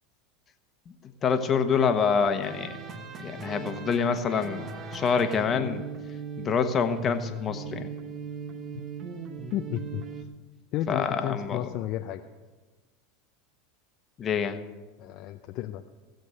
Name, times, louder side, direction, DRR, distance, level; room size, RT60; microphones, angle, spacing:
voice 1, 1.2-2.8 3.2-5.9 6.4-7.9 10.9-11.7 14.2-14.6, left 6 dB, 35° left, 8 dB, 1.2 m, -26 dB
sound 1, 2.4-10.2, right 4 dB, 40° right, 1.2 m, -39 dB
voice 2, 9.5-10.0 10.7-12.2 15.0-15.8, left 12 dB, 50° left, 5 dB, 0.6 m, -32 dB
16.5 x 7.9 x 6.5 m, 1.3 s
hypercardioid pair, 90°, 0 cm